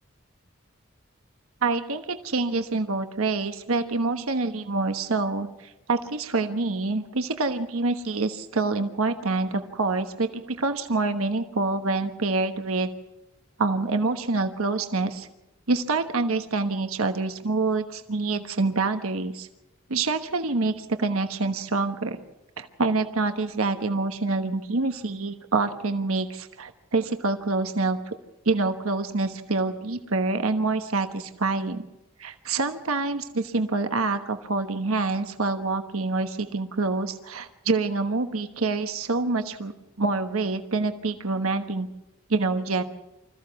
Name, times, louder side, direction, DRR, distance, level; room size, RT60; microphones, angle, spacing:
voice 1, 1.6-12.9 13.6-15.3 15.7-19.5 19.9-22.2 22.6-28.0 28.4-31.8 32.2-39.7 40.0-41.9 42.3-42.8, right 3 dB, 85° right, 7 dB, 1.2 m, -26 dB
25.5 x 14.5 x 7.0 m, 0.98 s
head